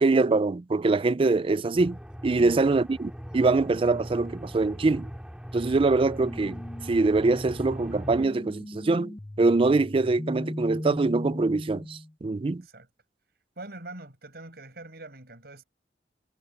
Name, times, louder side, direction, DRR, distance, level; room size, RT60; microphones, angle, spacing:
voice 1, 0.0-2.0 2.2-5.1 5.5-6.6 6.9-12.6, right 3 dB, 30° right, 0.4 m, -24 dB
Aircraft, 1.7-8.3, equal, 5° right, 2.6 m, -40 dB
voice 2, 2.3-2.6 12.4-12.9 13.6-15.6, right 2 dB, 65° right, 6.4 m, -43 dB
sound 1, 6.2-12.1, left 1 dB, 15° left, 0.6 m, -38 dB
head